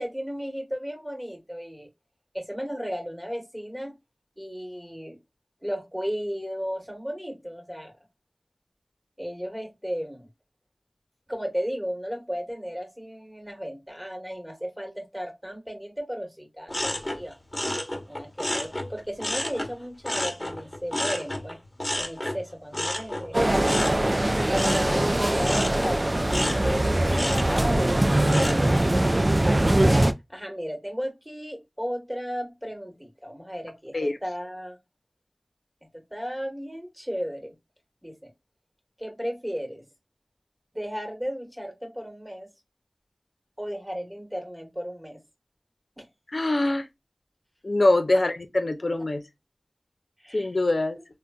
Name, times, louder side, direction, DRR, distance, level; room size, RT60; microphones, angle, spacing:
voice 1, 0.0-1.9 2.3-3.9 4.4-5.2 5.6-7.9 9.2-10.3 11.3-17.4 18.1-21.6 21.9-23.5 24.5-29.1 30.3-34.8 35.9-37.5 38.0-38.3 39.0-39.9 40.7-42.5 43.6-45.2 46.0-46.1 50.2-50.5, equal, 5° right, 1.3 m, -34 dB
sound 1, 16.7-19.7 20.0-28.9 29.3-29.8, left 1 dB, 30° left, 1.0 m, -31 dB
sound 2, 23.3-30.1, right 1 dB, 40° right, 0.4 m, -22 dB
voice 2, 46.3-46.9 47.6-49.2 50.3-51.0, left 2 dB, 85° left, 0.6 m, -23 dB
3.8 x 2.2 x 2.3 m
wide cardioid pair, 50°, 0 cm